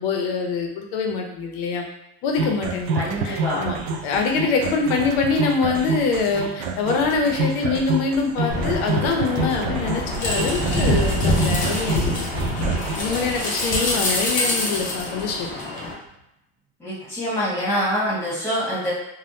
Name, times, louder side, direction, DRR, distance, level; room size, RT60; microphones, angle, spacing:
voice 1, 0.0-1.8 2.2-3.8 4.0-12.3 12.9-15.5, left 4 dB, 55° left, 2 dB, 0.7 m, -24 dB
sound 1, 2.4-13.0, right 3 dB, 80° right, 0.5 m, -28 dB
voice 2, 2.9-3.6 16.8-18.9, equal, 10° left, -7 dB, 1.2 m, -25 dB
sound 2, 8.5-15.9, left 1 dB, 25° left, 0.6 m, -24 dB
3.5 x 2.2 x 2.7 m, 0.87 s
supercardioid pair, 150°, 32 cm